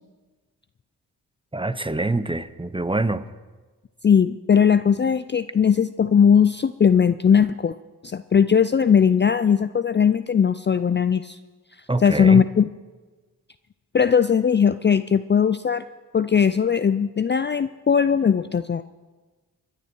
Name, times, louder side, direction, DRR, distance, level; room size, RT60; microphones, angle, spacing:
voice 1, 1.5-3.3 11.9-12.4, right 2 dB, 15° right, 14 dB, 0.8 m, -25 dB
voice 2, 4.0-7.8 8.0-11.4 12.0-12.7 13.9-15.9 16.1-18.8, left 7 dB, 25° left, 12 dB, 0.5 m, -19 dB
23.0 x 9.8 x 4.7 m, 1.3 s
supercardioid pair, 45°, 41 cm